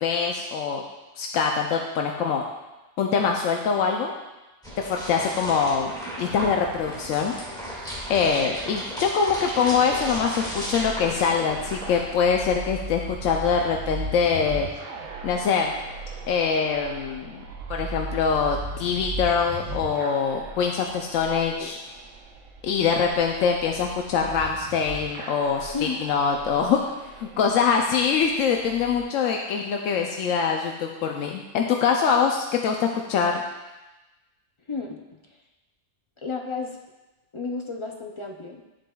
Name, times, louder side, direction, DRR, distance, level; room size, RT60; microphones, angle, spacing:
voice 1, 0.0-0.8 1.2-2.4 3.0-4.1 4.8-7.3 8.1-14.7 15.2-15.7 16.3-17.4 17.7-21.8 22.6-26.8 27.1-33.4, left 6 dB, 90° left, 2 dB, 1.0 m, -24 dB
sound 1, 4.6-12.0, equal, 5° left, 2.0 m, -35 dB
sound 2, 9.6-29.0, right 3 dB, 90° right, 1.2 m, -38 dB
voice 2, 34.7-35.0 36.2-36.8 37.3-38.6, left 4 dB, 50° left, 1 dB, 0.3 m, -32 dB
10.0 x 7.7 x 2.3 m, 1.1 s
omnidirectional pair, 1.3 m